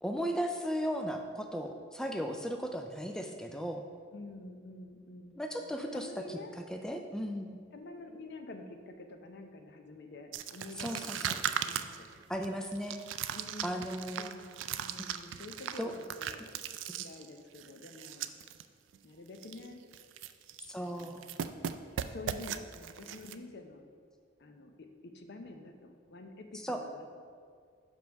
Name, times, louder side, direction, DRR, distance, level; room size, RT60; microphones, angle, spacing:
voice 1, 0.0-3.8 5.4-6.4 6.7-7.6 10.8-11.4 12.3-13.0 13.6-14.3 15.8-15.9 16.9-17.0 20.7-21.2 26.6-26.8, equal, 5° left, 3 dB, 0.3 m, -36 dB
voice 2, 4.1-5.4 5.9-6.5 7.7-11.1 11.5-12.2 13.3-16.5 17.0-18.3 19.0-19.8 20.8-21.5 22.1-23.9 24.4-27.2, left 2 dB, 60° left, 5 dB, 0.6 m, -48 dB
sound 1, 10.3-18.6 18.9-19.0 19.3-19.7 19.9-20.7 21.0-23.3, right 9 dB, 75° right, 0.3 m, -38 dB
5.3 x 4.5 x 6.2 m, 2.2 s
head